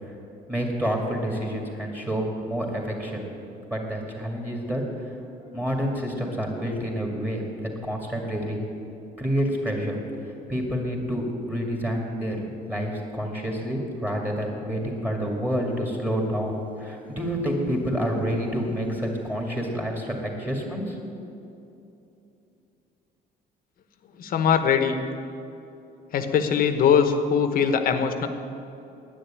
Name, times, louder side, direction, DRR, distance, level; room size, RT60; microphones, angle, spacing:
voice 1, 0.5-3.2 3.7-5.1 5.5-8.6 9.2-10.0 10.2-21.2, equal, 10° right, 0 dB, 2.3 m, -28 dB
voice 2, 24.2-24.9 26.1-28.3, left 7 dB, 60° left, 8 dB, 1.0 m, -21 dB
10.0 x 9.4 x 8.8 m, 2.8 s
cardioid pair, 110°, 17 cm